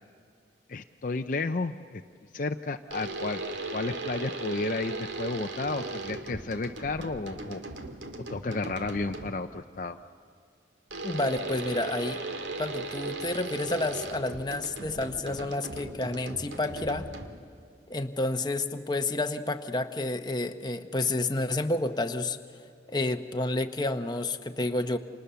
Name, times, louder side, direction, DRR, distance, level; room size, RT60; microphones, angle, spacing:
voice 1, 0.7-2.0 2.3-3.4 3.7-7.6 8.3-10.0, left 3 dB, 45° left, 6 dB, 0.6 m, -32 dB
sound 1, 2.9-9.5 10.9-17.6, right 2 dB, 80° right, 2.1 m, -38 dB
voice 2, 11.0-12.2 12.6-17.1 17.9-22.4 22.9-25.0, left 2 dB, 20° left, 6 dB, 0.9 m, -30 dB
30.0 x 27.5 x 6.9 m, 2.5 s
head